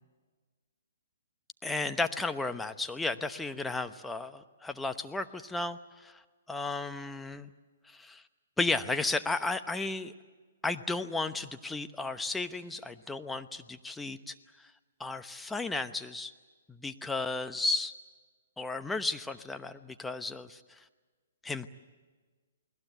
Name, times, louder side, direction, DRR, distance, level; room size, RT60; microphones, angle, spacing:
voice 1, 1.6-6.2 6.5-7.5 7.9-8.2 8.6-10.1 10.6-14.7 15.0-16.3 16.7-17.9 18.6-20.6 21.4-21.7, left 3 dB, 5° left, 9 dB, 0.9 m, -34 dB
29.0 x 20.5 x 8.2 m, 1.4 s
hypercardioid pair, 130°, 0 cm